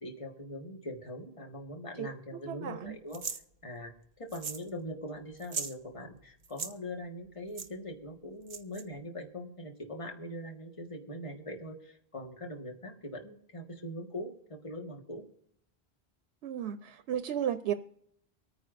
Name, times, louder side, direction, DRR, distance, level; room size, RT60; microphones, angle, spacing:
voice 1, 0.0-3.2 3.6-15.2, left 1 dB, 30° left, 2 dB, 1.5 m, -42 dB
voice 2, 2.5-3.0 16.4-17.7, right 10 dB, 85° right, 10 dB, 0.9 m, -34 dB
sound 1, 3.1-3.4 4.3-4.7 4.9-5.0 5.4-5.7 6.4-6.7 7.6-7.7 8.5-8.8, right 5 dB, 50° right, 0.9 m, -38 dB
24.5 x 9.5 x 2.5 m, 0.72 s
omnidirectional pair, 1.1 m